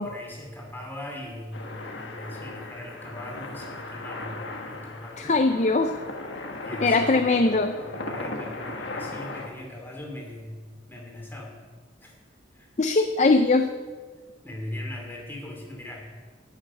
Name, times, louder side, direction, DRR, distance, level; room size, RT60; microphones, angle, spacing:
voice 1, 0.0-5.4 6.6-7.4 7.8-10.6 10.9-11.6 12.0-12.1 12.5-12.7 14.4-16.1, left 1 dB, 10° left, -1 dB, 2.6 m, -39 dB
sound 1, 1.5-9.5, left 2 dB, 75° left, 1.4 m, -37 dB
voice 2, 5.2-5.9 6.8-7.7 12.8-13.7, left 3 dB, 40° left, 7 dB, 0.5 m, -21 dB
11.0 x 6.6 x 9.3 m, 1.5 s
head